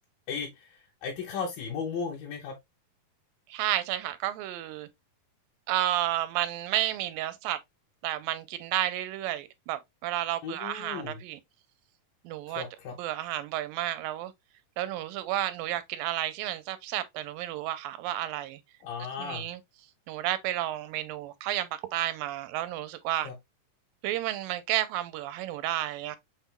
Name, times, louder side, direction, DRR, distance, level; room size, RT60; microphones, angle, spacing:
voice 1, 0.3-2.6 10.4-11.2 12.5-13.0 18.8-19.5 23.2-23.4, left 5 dB, 80° left, 2.6 m, -36 dB
voice 2, 3.5-4.9 5.7-7.6 8.0-11.4 12.3-12.6 13.0-14.3 14.8-18.6 19.2-19.6 20.1-23.3 24.0-26.2, right 13 dB, 85° right, 2.3 m, -31 dB
6.0 x 3.7 x 2.2 m
omnidirectional pair, 4.1 m